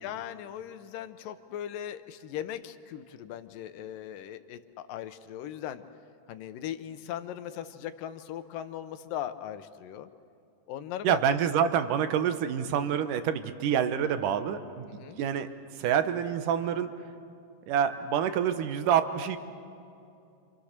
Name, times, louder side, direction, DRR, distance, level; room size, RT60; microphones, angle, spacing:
voice 1, 0.0-5.9 6.3-10.1 10.7-11.2 14.9-15.2, left 10 dB, 75° left, 10 dB, 2.3 m, -39 dB
voice 2, 11.0-14.9 15.2-15.5 15.8-16.9 17.7-19.4, right 8 dB, 70° right, 10 dB, 2.2 m, -27 dB
29.0 x 27.0 x 6.7 m, 2.6 s
omnidirectional pair, 4.5 m